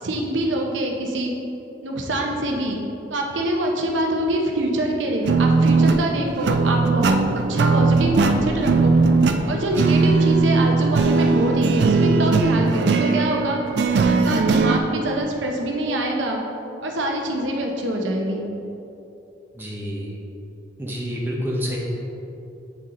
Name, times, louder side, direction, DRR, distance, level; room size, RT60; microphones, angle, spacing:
voice 1, 0.0-1.3 1.8-2.8 3.1-7.2 7.5-9.0 9.5-13.6 14.0-16.4 16.8-18.5, right 1 dB, 85° right, 1 dB, 0.7 m, -24 dB
sound 1, 5.2-14.8, right 4 dB, 60° right, 0.4 m, -19 dB
voice 2, 9.7-10.0 19.5-20.1 20.8-21.8, equal, 10° right, -4 dB, 0.8 m, -28 dB
8.0 x 4.1 x 3.7 m, 2.9 s
head